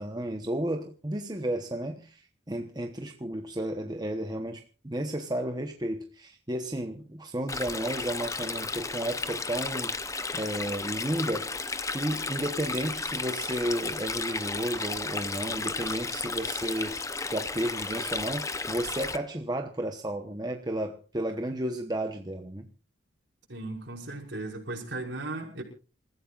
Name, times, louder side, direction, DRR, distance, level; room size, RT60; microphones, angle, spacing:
voice 1, 0.0-9.9 10.3-11.6 11.9-22.7, right 1 dB, 20° right, 1.0 m, -33 dB
Stream, 7.5-19.2, left 4 dB, 15° left, 0.7 m, -33 dB
voice 2, 23.5-25.6, right 2 dB, 60° right, 5.5 m, -36 dB
28.0 x 15.0 x 2.5 m
head